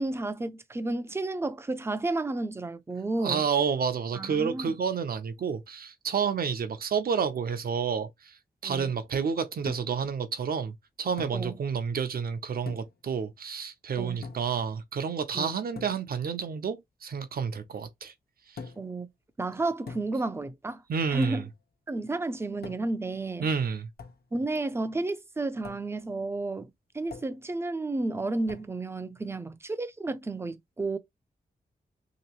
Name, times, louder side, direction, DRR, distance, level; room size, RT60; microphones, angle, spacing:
voice 1, 0.0-3.4 4.1-4.8 8.6-8.9 11.3-11.5 14.0-14.2 15.3-15.5 18.8-19.1 19.4-20.8 21.1-21.4 21.9-23.5 24.3-26.7 26.9-31.0, right 2 dB, 15° right, 0.4 m, -32 dB
voice 2, 3.2-8.3 8.6-18.1 20.9-21.5 23.4-23.9, right 6 dB, 70° right, 0.7 m, -30 dB
sound 1, 9.7-10.1 11.2-11.4 12.7-13.0 14.2-14.6 15.8-16.0 18.6-19.0 19.9-20.3 21.2-21.6 22.6-23.0 24.0-24.2 25.6-25.9 27.1-27.4 28.5-28.7, left 5 dB, 75° left, 0.9 m, -43 dB
3.4 x 2.9 x 2.9 m
wide cardioid pair, 165°, 16 cm